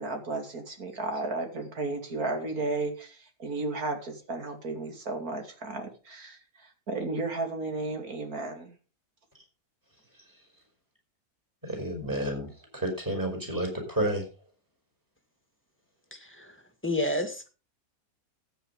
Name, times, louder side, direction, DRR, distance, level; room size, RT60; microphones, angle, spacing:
voice 1, 0.0-8.7, right 3 dB, 65° right, 4 dB, 3.0 m, -34 dB
voice 2, 11.7-14.2, right 1 dB, 10° right, 1 dB, 5.0 m, -30 dB
voice 3, 16.1-16.5 16.8-17.5, left 1 dB, 5° left, 6 dB, 2.0 m, -30 dB
13.0 x 9.1 x 5.3 m, 0.34 s
omnidirectional pair, 1.7 m